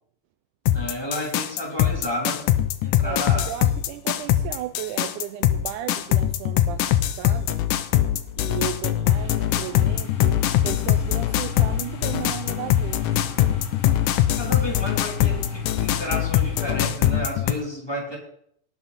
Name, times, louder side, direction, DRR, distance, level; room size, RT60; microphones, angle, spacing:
sound 1, 0.7-17.5, left 12 dB, 85° left, 2.3 m, -22 dB
voice 1, 0.7-2.4 2.8-3.5 14.4-18.2, left 1 dB, 10° left, -2 dB, 2.9 m, -31 dB
voice 2, 3.0-7.7 8.4-13.3, right 11 dB, 85° right, 7 dB, 2.1 m, -35 dB
sound 2, 9.1-16.9, left 6 dB, 55° left, 1.9 m, -36 dB
18.5 x 7.9 x 4.2 m, 0.69 s
omnidirectional pair, 3.6 m